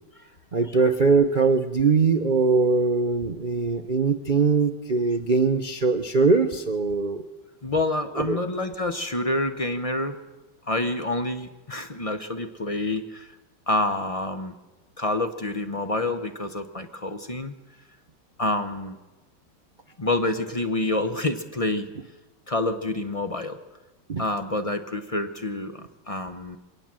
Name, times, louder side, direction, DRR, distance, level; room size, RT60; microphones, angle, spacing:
voice 1, 0.5-7.2 8.2-8.4 24.1-24.2, right 4 dB, 65° right, 7 dB, 0.4 m, -21 dB
voice 2, 7.6-10.2 10.7-13.3 13.7-14.5 15.0-17.5 18.4-19.0 20.0-21.9 22.5-23.6 24.2-26.6, left 2 dB, 40° left, 8 dB, 0.5 m, -27 dB
23.5 x 18.0 x 7.6 m, 1.1 s
omnidirectional pair, 2.3 m